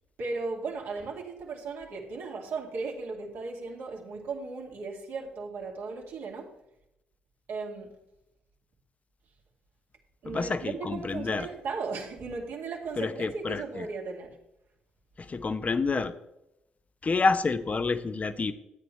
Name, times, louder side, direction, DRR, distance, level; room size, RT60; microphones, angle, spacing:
voice 1, 0.2-6.5 7.5-7.9 10.2-14.4, right 4 dB, 65° right, -1 dB, 2.4 m, -36 dB
voice 2, 10.3-11.5 13.0-13.8 15.3-16.1 17.0-18.5, left 4 dB, 35° left, 11 dB, 0.8 m, -28 dB
13.0 x 8.9 x 3.2 m, 0.87 s
hypercardioid pair, 50°, 4 cm